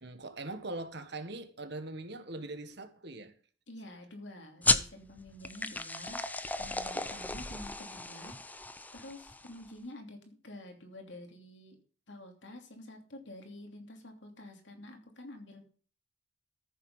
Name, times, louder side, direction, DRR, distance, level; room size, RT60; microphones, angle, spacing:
voice 1, 0.0-3.3 7.5-7.7, right 2 dB, 60° right, 1.6 m, -42 dB
voice 2, 3.7-6.2 6.6-8.6 8.9-11.8 12.1-15.6, left 1 dB, 70° left, 2.9 m, -48 dB
sound 1, 4.6-9.7, left 2 dB, 10° left, 0.7 m, -34 dB
14.0 x 7.1 x 5.6 m
head